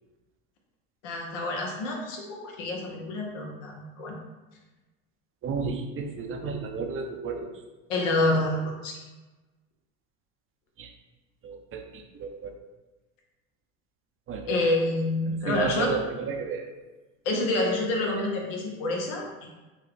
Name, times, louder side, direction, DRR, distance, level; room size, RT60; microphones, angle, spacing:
voice 1, 1.0-4.1 7.9-9.0 14.5-15.9 17.2-19.5, left 2 dB, 85° left, 0 dB, 1.2 m, -28 dB
voice 2, 5.4-7.5 10.8-10.9 11.4-12.5 14.3-14.5 15.5-16.7, right 5 dB, 35° right, 4 dB, 0.6 m, -32 dB
4.2 x 2.4 x 4.8 m, 1.2 s
supercardioid pair, 100°, 36 cm